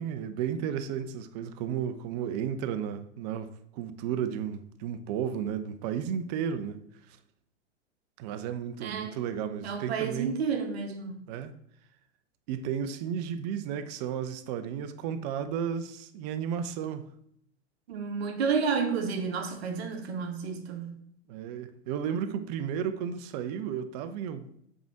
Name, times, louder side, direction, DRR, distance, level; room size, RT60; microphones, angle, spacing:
voice 1, 0.0-7.2 8.2-10.4 11.3-11.5 12.5-17.1 21.3-24.5, right 8 dB, 35° right, 0.6 m, -33 dB
voice 2, 8.8-9.2 9.6-11.2 17.9-21.0, right 5 dB, 60° right, 1.1 m, -31 dB
7.2 x 3.7 x 4.4 m
figure-of-eight pair, 100°, 36 cm